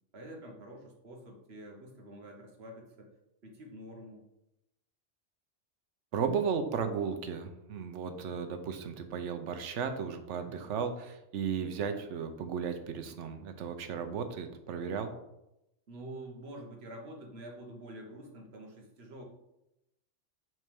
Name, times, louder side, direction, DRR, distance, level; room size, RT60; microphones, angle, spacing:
voice 1, 0.1-3.1 3.4-4.2 10.4-10.7 15.9-19.2, right 1 dB, 55° right, 1 dB, 1.4 m, -47 dB
voice 2, 6.1-15.1, right 6 dB, 70° right, 8 dB, 1.0 m, -35 dB
6.1 x 3.4 x 5.3 m, 0.87 s
omnidirectional pair, 1.3 m